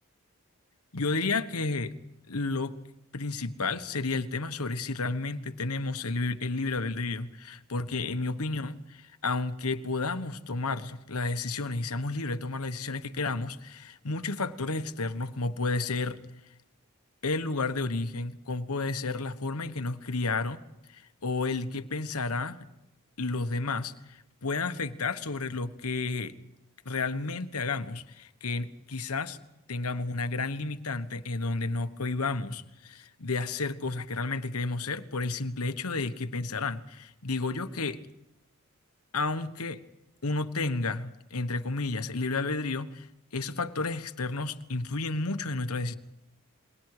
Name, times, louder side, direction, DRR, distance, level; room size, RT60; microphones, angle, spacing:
voice 1, 0.9-1.9 2.3-2.8 3.1-16.2 17.2-20.6 20.9-22.6 23.2-26.3 26.8-29.4 29.7-38.0 39.1-39.8 40.2-43.1 43.3-45.9, left 3 dB, 85° left, 11 dB, 1.3 m, -31 dB
29.0 x 22.0 x 4.9 m, 0.89 s
head